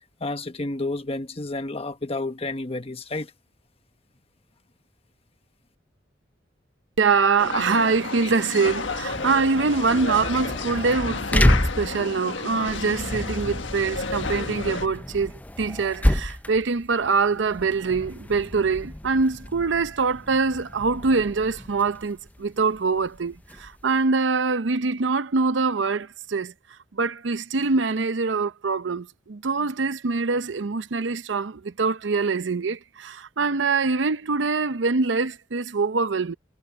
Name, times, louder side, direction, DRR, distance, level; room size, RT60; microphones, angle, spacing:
voice 1, 0.2-3.3, left 2 dB, 30° left, 1.2 m, -30 dB
voice 2, 7.0-15.3 15.6-26.5 26.9-36.3, right 4 dB, 75° right, 0.7 m, -24 dB
sound 1, 7.4-14.9, left 4 dB, 75° left, 1.5 m, -32 dB
sound 2, 8.6-24.0, left 1 dB, 10° left, 0.5 m, -30 dB
head